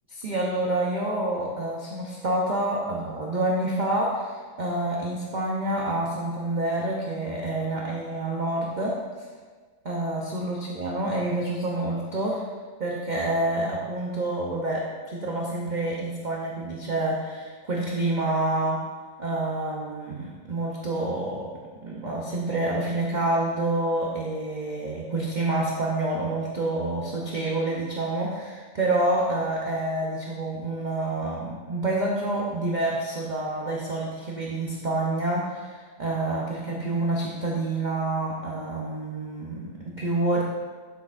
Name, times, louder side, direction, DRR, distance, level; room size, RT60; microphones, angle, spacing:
voice 1, 0.1-9.3 9.8-12.4 12.8-18.8 19.2-21.5 21.8-40.4, right 2 dB, 35° right, -3 dB, 0.8 m, -28 dB
11.5 x 6.4 x 2.6 m, 1.5 s
omnidirectional pair, 1.8 m